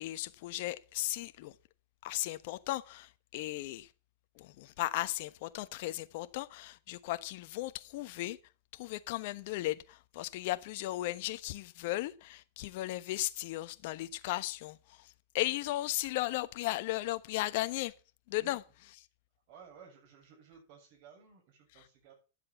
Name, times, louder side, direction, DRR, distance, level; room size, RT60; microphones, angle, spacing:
voice 1, 0.0-1.5 2.0-3.9 4.4-8.4 8.7-17.9 18.3-18.6, left 17 dB, 55° left, 1.1 m, -36 dB
voice 2, 19.5-22.1, right 6 dB, 50° right, 7.1 m, -56 dB
11.0 x 7.6 x 6.9 m
hypercardioid pair, 135°, 0 cm